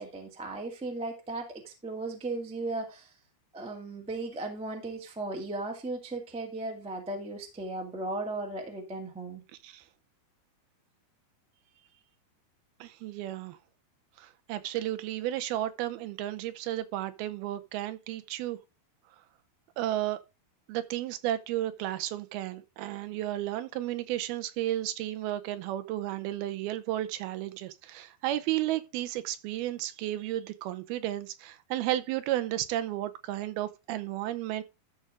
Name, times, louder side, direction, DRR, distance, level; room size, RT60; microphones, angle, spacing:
voice 1, 0.0-3.1 3.5-9.4, right 2 dB, 10° right, 0.3 m, -36 dB
voice 2, 12.8-13.6 14.2-18.6 19.8-20.2 20.7-34.6, right 14 dB, 80° right, 2.6 m, -33 dB
13.0 x 4.9 x 3.7 m
omnidirectional pair, 4.5 m